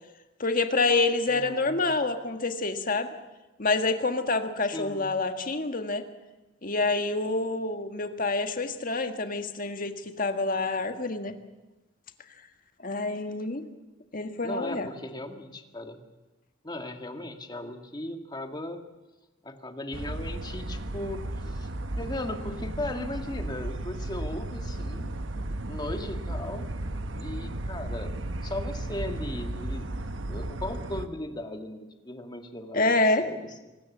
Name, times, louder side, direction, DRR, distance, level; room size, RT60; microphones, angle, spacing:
voice 1, 0.4-3.1 3.6-6.0 6.6-11.3 12.8-13.6 14.1-14.9 32.7-33.2, left 3 dB, 45° left, 7 dB, 1.6 m, -27 dB
voice 2, 1.3-1.9 4.7-5.1 14.4-16.0 16.6-18.8 19.4-21.7 22.0-25.1 25.7-26.7 27.1-28.1 28.4-29.9 30.3-33.5, left 1 dB, 20° left, 5 dB, 1.8 m, -37 dB
sound 1, 19.9-31.1, right 1 dB, 80° right, 1.2 m, -34 dB
24.5 x 19.0 x 7.3 m, 1.1 s
head